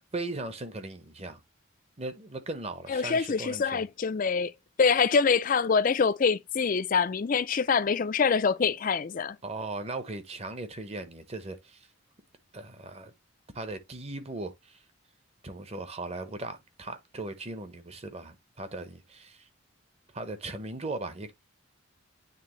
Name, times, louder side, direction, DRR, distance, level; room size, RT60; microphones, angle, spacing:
voice 1, 0.1-1.4 2.0-3.8 9.4-11.9 12.5-13.1 13.5-14.8 15.4-19.4 20.1-21.3, right 2 dB, 30° right, 0.9 m, -38 dB
voice 2, 2.9-4.5 4.8-9.4, left 5 dB, 40° left, 0.4 m, -25 dB
9.3 x 3.4 x 3.1 m
head